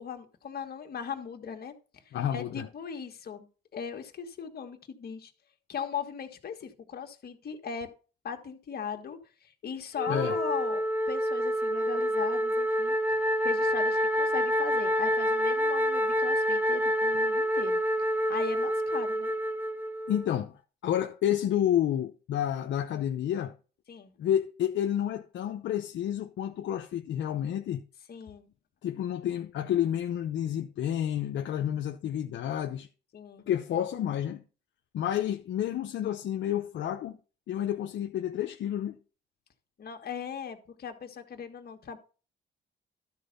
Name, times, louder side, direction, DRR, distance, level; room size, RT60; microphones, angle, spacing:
voice 1, 0.0-5.3 5.7-7.9 8.2-12.9 13.4-17.8 18.3-19.3 23.9-24.1 28.1-28.5 33.1-33.5 39.8-42.0, left 7 dB, 50° left, 1.6 m, -38 dB
voice 2, 2.1-2.6 10.1-10.4 20.1-20.6 20.8-23.5 24.2-27.8 28.8-32.9 33.4-34.4 34.9-37.2 37.5-39.0, left 10 dB, 70° left, 0.8 m, -30 dB
Wind instrument woodwind instrument, 10.0-20.3, equal, 10° right, 1.0 m, -27 dB
12.5 x 4.4 x 5.3 m
cardioid pair, 90°, 20 cm